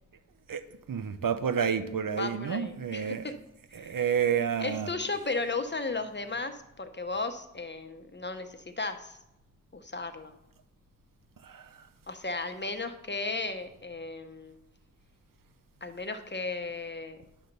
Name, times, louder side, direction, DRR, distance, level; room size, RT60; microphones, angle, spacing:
voice 1, 0.9-3.3 3.8-4.9 11.5-11.6, right 7 dB, 90° right, 10 dB, 0.6 m, -29 dB
voice 2, 2.2-3.3 3.7-4.0 4.6-9.2 9.7-10.3 12.1-14.6 15.8-17.2, left 3 dB, 35° left, 8 dB, 0.8 m, -35 dB
10.0 x 4.0 x 6.6 m, 0.86 s
wide cardioid pair, 50°, 32 cm